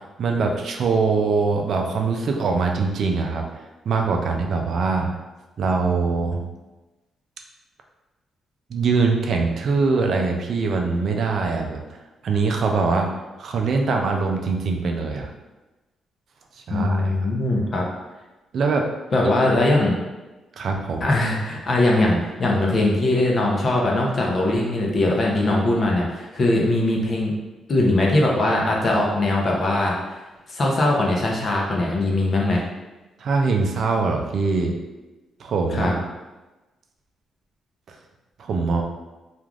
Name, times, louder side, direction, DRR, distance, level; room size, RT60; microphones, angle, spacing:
voice 1, 0.2-3.4 3.9-5.1 5.6-6.4 8.7-11.8 12.2-13.1 13.4-15.3 16.5-17.2 18.5-18.9 20.6-21.0 33.2-34.8 35.4-36.0 38.4-38.8, right 4 dB, 55° right, 2 dB, 0.4 m, -22 dB
voice 2, 16.7-17.9 19.1-19.9 21.0-27.3 27.7-30.0 30.5-32.6 35.7-35.9, left 2 dB, 40° left, -2 dB, 0.6 m, -21 dB
3.2 x 2.4 x 2.4 m, 1.1 s
cardioid pair, 130°, 0 cm